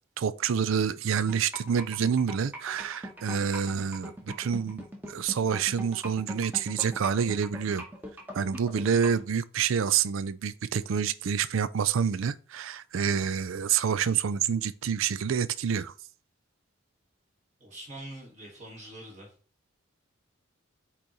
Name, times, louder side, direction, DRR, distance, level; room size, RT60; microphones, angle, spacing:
voice 1, 0.2-7.8 8.3-15.9, right 7 dB, 75° right, 0.4 m, -28 dB
sound 1, 1.3-9.2, right 1 dB, 10° right, 1.0 m, -39 dB
voice 2, 17.6-19.3, right 1 dB, 35° right, 1.6 m, -44 dB
8.3 x 3.0 x 3.9 m
head